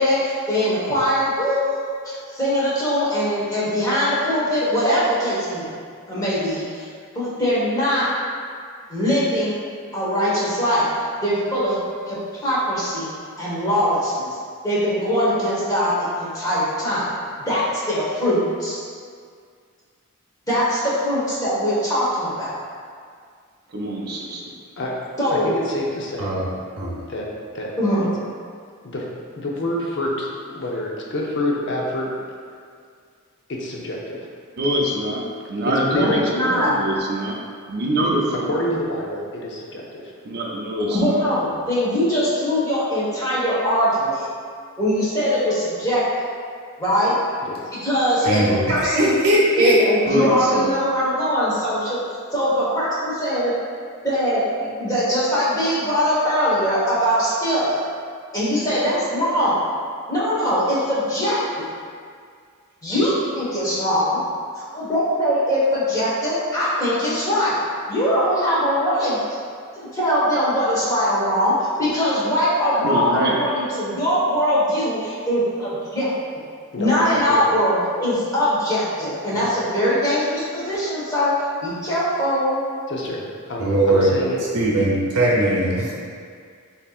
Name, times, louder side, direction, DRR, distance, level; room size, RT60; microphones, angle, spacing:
voice 1, 0.0-5.7 6.1-6.9 7.1-8.1 8.9-9.6 9.9-10.9 11.2-11.8 12.1-13.1 13.4-14.3 14.6-17.1 17.5-18.9 20.5-22.6 25.2-25.5 27.8-28.1 35.9-36.7 40.9-44.3 44.8-46.3 46.8-47.1 47.8-48.4 48.7-49.1 49.6-52.0 52.3-53.5 54.0-57.8 58.3-59.6 60.1-61.6 62.8-64.2 64.5-67.6 67.9-69.2 69.7-76.4 76.8-81.3 81.6-82.6, equal, 15° left, -9 dB, 1.3 m, -21 dB
voice 2, 23.7-24.4 34.6-37.4 37.7-38.6 40.3-41.3 41.6-41.7 50.0-50.7 72.8-73.6, equal, 45° right, -3 dB, 0.5 m, -24 dB
voice 3, 25.3-26.4 27.1-27.2 27.5-27.7 28.8-29.0 29.4-32.1 33.5-34.2 35.9-36.2 38.5-39.8 47.5-47.6 76.7-77.4 79.3-79.5 82.9-83.2 83.5-84.4 84.8-84.9, left 1 dB, 55° left, -2 dB, 0.7 m, -27 dB
voice 4, 48.2-49.8 83.6-84.1 84.5-85.9, right 1 dB, 85° right, -5 dB, 0.8 m, -19 dB
7.0 x 2.8 x 2.4 m, 2.1 s
head